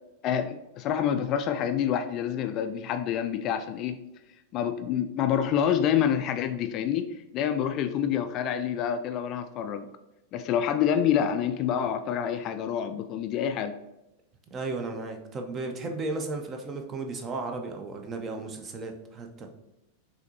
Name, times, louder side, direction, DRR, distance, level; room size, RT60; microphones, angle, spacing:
voice 1, 0.2-4.0 4.5-9.9 10.3-13.8, left 9 dB, 35° left, 8 dB, 0.3 m, -27 dB
voice 2, 14.5-19.5, right 3 dB, 25° right, 5 dB, 0.6 m, -34 dB
5.7 x 2.8 x 2.8 m, 0.89 s
figure-of-eight pair, 90°, 0 cm